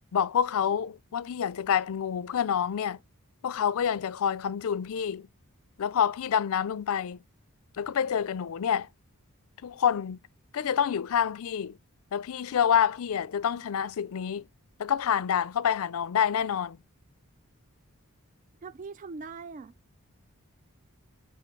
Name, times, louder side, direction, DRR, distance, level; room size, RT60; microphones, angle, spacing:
voice 1, 0.1-3.0 3.4-5.3 5.8-7.2 7.8-8.9 9.6-10.2 10.5-11.8 12.1-14.4 14.8-16.8, left 8 dB, 65° left, 0.4 m, -27 dB
voice 2, 18.6-19.7, right 4 dB, 35° right, 0.3 m, -41 dB
8.0 x 3.1 x 4.5 m
head